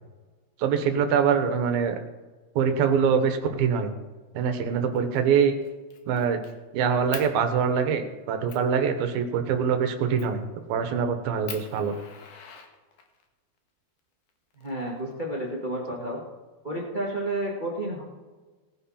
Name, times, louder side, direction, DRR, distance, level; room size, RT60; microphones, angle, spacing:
voice 1, 0.6-2.0 2.6-3.9 4.3-5.5 6.1-6.4 6.7-11.9, right 7 dB, 70° right, 7 dB, 2.7 m, -24 dB
Fire, 4.9-5.2 5.6-6.5 7.1-7.3 7.9-8.0 8.5-8.7 10.2-10.4 10.9-11.0 11.5-13.2 14.3-15.3, left 7 dB, 60° left, 2.6 m, -42 dB
voice 2, 14.6-16.2 16.6-18.0, right 1 dB, 30° right, -2 dB, 0.8 m, -31 dB
18.5 x 10.0 x 4.3 m, 1.3 s
omnidirectional pair, 4.7 m